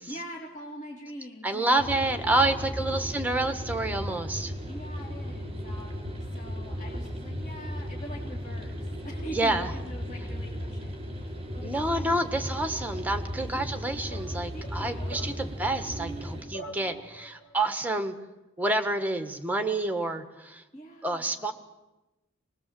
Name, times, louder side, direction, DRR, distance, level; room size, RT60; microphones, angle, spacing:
voice 1, 0.1-2.0 2.6-3.1 4.7-12.5 13.4-13.6 14.5-15.5 20.7-21.3, equal, 35° left, -3 dB, 3.2 m, -44 dB
voice 2, 1.4-4.5 9.3-9.7 11.6-18.2 18.6-20.6 21.0-21.5, right 2 dB, 10° right, 7 dB, 1.4 m, -28 dB
sound 1, 1.8-16.4, equal, 30° right, 3.8 m, -36 dB
sound 2, 14.1-17.5, right 3 dB, 70° left, 5.1 m, -45 dB
24.0 x 20.5 x 7.7 m, 1.0 s
head